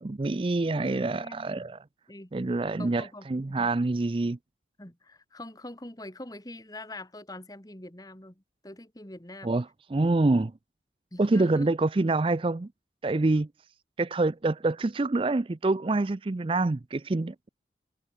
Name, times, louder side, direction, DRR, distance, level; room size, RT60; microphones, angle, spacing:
voice 1, 0.0-1.8 2.3-4.4 9.4-9.6 9.9-10.5 11.2-12.7 13.0-13.5 14.0-17.5, right 2 dB, 30° right, 0.4 m, -26 dB
voice 2, 0.7-1.7 2.1-2.3 2.7-3.7 4.8-9.5 10.3-10.5 11.1-11.7, left 1 dB, 20° left, 2.2 m, -44 dB
head